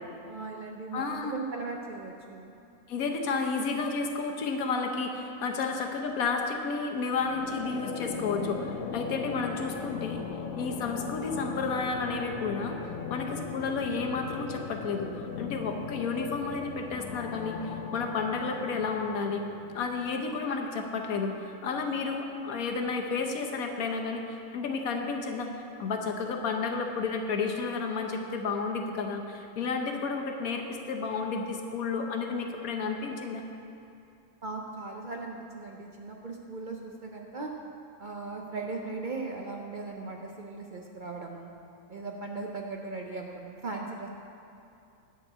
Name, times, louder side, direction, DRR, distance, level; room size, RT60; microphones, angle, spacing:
voice 1, 0.2-2.5 34.4-37.5 38.0-41.5 41.9-44.1, right 3 dB, 50° right, 1 dB, 0.6 m, -38 dB
voice 2, 0.9-1.3 2.9-10.2 10.6-19.4 19.7-33.4, left 4 dB, 90° left, 3 dB, 1.3 m, -31 dB
sound 1, 7.2-20.3, left 6 dB, 70° left, 1.0 m, -39 dB
10.5 x 4.5 x 7.8 m, 2.6 s
omnidirectional pair, 1.4 m